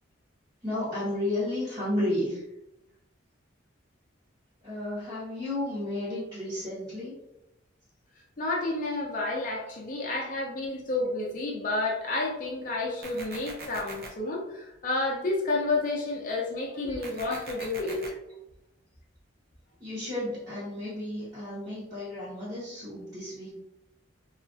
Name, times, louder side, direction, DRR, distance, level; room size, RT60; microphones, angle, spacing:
voice 1, 0.6-2.4 4.6-7.1 9.5-9.6 9.9-10.0 16.9-17.7 19.8-23.5, left 1 dB, 20° right, -12 dB, 0.9 m, -33 dB
voice 2, 8.4-18.1, left 2 dB, 40° left, -1 dB, 0.5 m, -30 dB
sound 1, 13.0-14.1 17.0-18.1, right 3 dB, 50° right, 0.5 m, -42 dB
2.8 x 2.4 x 2.5 m, 0.89 s
head